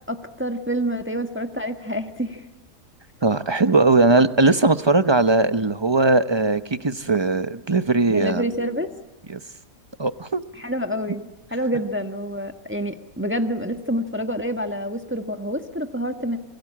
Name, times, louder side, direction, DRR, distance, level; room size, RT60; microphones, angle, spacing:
voice 1, 0.1-2.5 8.1-8.9 10.5-16.4, equal, 10° right, 6 dB, 1.5 m, -27 dB
voice 2, 3.2-8.4 9.3-9.4 10.0-10.4, right 3 dB, 25° right, 12 dB, 0.7 m, -19 dB
27.5 x 22.5 x 8.8 m, 1.0 s
omnidirectional pair, 1.5 m